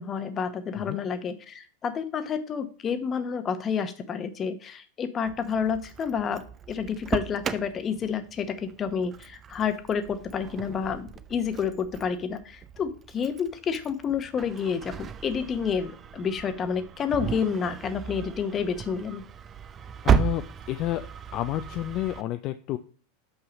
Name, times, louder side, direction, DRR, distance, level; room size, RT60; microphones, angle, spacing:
voice 1, 0.0-19.2, left 6 dB, 25° left, 9 dB, 0.9 m, -29 dB
Engine starting, 5.3-22.2, right 8 dB, 25° right, 0.5 m, -34 dB
voice 2, 20.0-21.0 21.3-22.8, left 14 dB, 45° left, 8 dB, 0.4 m, -30 dB
5.7 x 5.5 x 5.3 m, 0.41 s
supercardioid pair, 130°, 0 cm